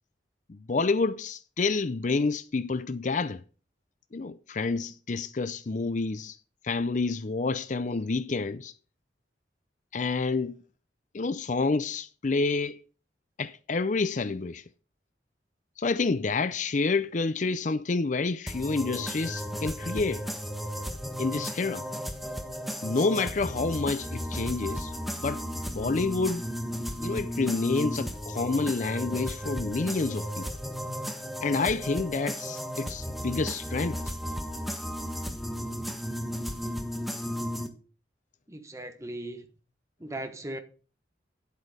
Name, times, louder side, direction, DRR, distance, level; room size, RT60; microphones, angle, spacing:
voice 1, 0.5-3.4 4.1-6.4 6.6-8.7 9.9-10.6 11.1-12.8 13.4-14.6 15.8-20.2 21.2-21.8 22.8-25.4 25.7-26.4 27.0-30.5 31.4-34.0, left 3 dB, 45° left, 0.5 m, -28 dB
sound 1, 18.5-37.7, equal, ahead, 1.3 m, -34 dB
voice 2, 38.5-39.5 40.0-40.6, right 1 dB, 15° right, 1.3 m, -38 dB
10.0 x 8.3 x 5.0 m
head